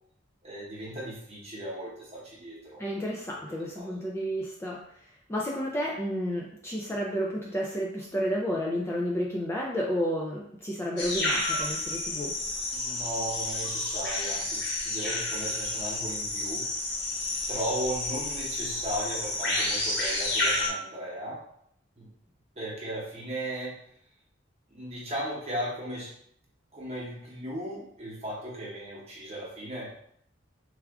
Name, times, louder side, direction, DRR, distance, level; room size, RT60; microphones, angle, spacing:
voice 1, 0.4-2.8 3.5-4.0 12.7-17.1 17.5-21.4 22.0-22.1 22.6-23.7 24.7-26.1 26.7-29.9, right 1 dB, 30° right, -4 dB, 0.9 m, -36 dB
voice 2, 2.8-4.8 5.3-12.3, equal, 10° left, -3 dB, 0.3 m, -31 dB
sound 1, 11.0-20.7, left 2 dB, 55° left, 0.9 m, -30 dB
3.4 x 2.4 x 3.5 m, 0.70 s
head